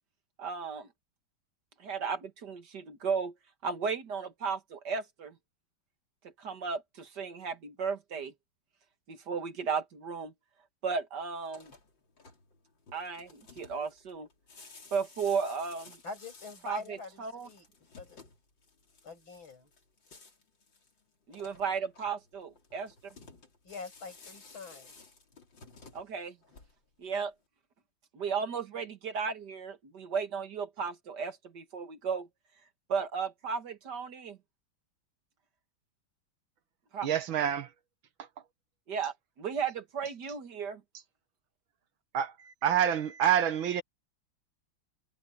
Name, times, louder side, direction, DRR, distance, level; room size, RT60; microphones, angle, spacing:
voice 1, 0.4-0.9 1.8-3.3 3.6-5.3 6.2-8.3 9.1-10.3 10.8-11.7 12.9-14.3 14.9-16.0 16.6-17.5 21.3-22.9 25.9-26.4 27.0-27.3 28.1-32.3 32.9-34.4 36.9-37.1 38.9-40.8, right 5 dB, 60° right, 2.2 m, -35 dB
sound 1, 11.4-27.0, left 4 dB, 70° left, 4.4 m, -55 dB
voice 2, 16.0-17.7 18.0-18.2 19.0-19.7 23.6-24.9, left 3 dB, 85° left, 8.9 m, -44 dB
voice 3, 37.0-37.7 42.1-43.8, right 9 dB, 85° right, 2.2 m, -27 dB
omnidirectional pair, 2.1 m